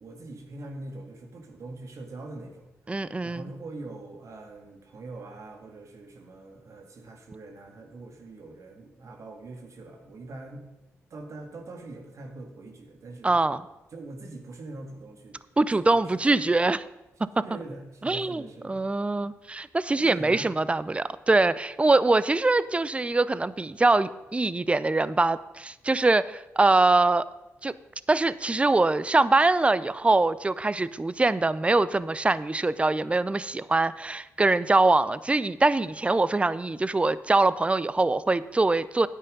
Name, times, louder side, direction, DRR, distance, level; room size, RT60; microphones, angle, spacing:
voice 1, 0.0-10.7 11.1-13.4 13.9-15.4 15.9-16.5 17.4-18.8 20.0-20.5, right 2 dB, 60° right, 3 dB, 2.0 m, -43 dB
voice 2, 2.9-3.5 13.2-13.6 15.6-16.8 17.4-17.5 18.0-27.3 27.6-27.7 28.1-39.1, right 2 dB, 20° right, 17 dB, 0.5 m, -23 dB
9.6 x 8.3 x 5.3 m, 0.95 s
supercardioid pair, 55°, 6 cm